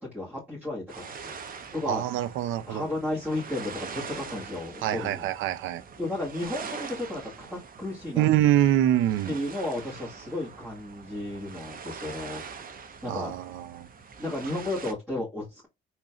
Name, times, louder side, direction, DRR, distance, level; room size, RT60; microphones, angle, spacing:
voice 1, 0.0-1.4 1.7-2.0 2.7-5.3 6.0-8.3 9.3-12.4 13.0-13.3 14.2-15.7, left 2 dB, 10° right, 2.1 m, -33 dB
sound 1, 0.9-14.9, right 5 dB, 45° right, 0.9 m, -43 dB
voice 2, 1.8-2.8 4.8-5.8 8.1-9.4 13.0-13.9, right 12 dB, 85° right, 0.5 m, -25 dB
3.9 x 3.0 x 2.4 m
cardioid pair, 90°, 20 cm